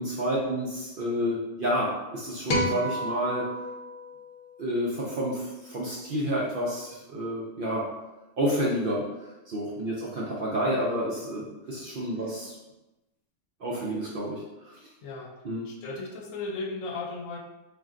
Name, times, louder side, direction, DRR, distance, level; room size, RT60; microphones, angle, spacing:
voice 1, 0.0-3.5 4.6-7.9 8.4-9.0 9.5-12.6 13.6-14.8 15.4-15.7, equal, 60° right, -5 dB, 0.6 m, -29 dB
sound 1, 2.5-5.0, equal, 60° left, 0.6 m, -31 dB
voice 2, 11.6-12.3 15.0-15.3 15.6-17.4, left 3 dB, 80° left, 1 dB, 0.9 m, -37 dB
2.5 x 2.2 x 3.6 m, 1.0 s
omnidirectional pair, 1.4 m